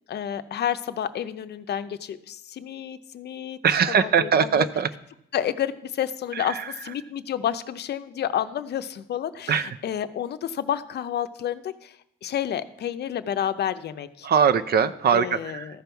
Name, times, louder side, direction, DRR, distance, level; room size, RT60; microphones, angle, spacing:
voice 1, 0.1-3.6 4.0-4.7 5.3-14.3 15.1-15.8, left 10 dB, 55° left, 11 dB, 0.6 m, -30 dB
voice 2, 3.6-4.9 6.3-6.7 9.5-9.7 14.2-15.8, right 7 dB, 50° right, 13 dB, 0.6 m, -22 dB
14.0 x 5.3 x 4.6 m, 0.78 s
cardioid pair, 90°, 20 cm